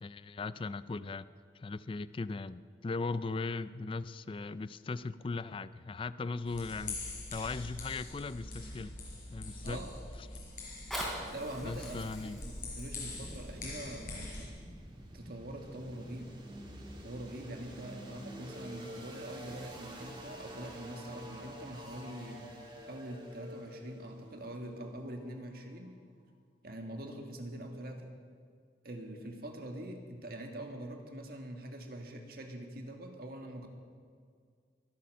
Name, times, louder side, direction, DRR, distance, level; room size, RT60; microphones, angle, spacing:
voice 1, 0.0-1.3 1.5-9.0 9.3-9.8 11.6-12.4, left 3 dB, 30° left, 0.4 m, -38 dB
sound 1, 6.4-14.5, left 2 dB, 50° left, 5.2 m, -44 dB
Fire, 10.6-15.6 16.3-16.4, equal, ahead, 3.7 m, -44 dB
voice 2, 11.1-14.5 15.1-16.3 17.0-22.5 22.9-25.9 26.6-28.1 28.8-33.7, right 1 dB, 55° right, 1.9 m, -44 dB
sound 2, 13.0-25.9, equal, 25° right, 2.1 m, -48 dB
23.0 x 8.5 x 6.6 m
head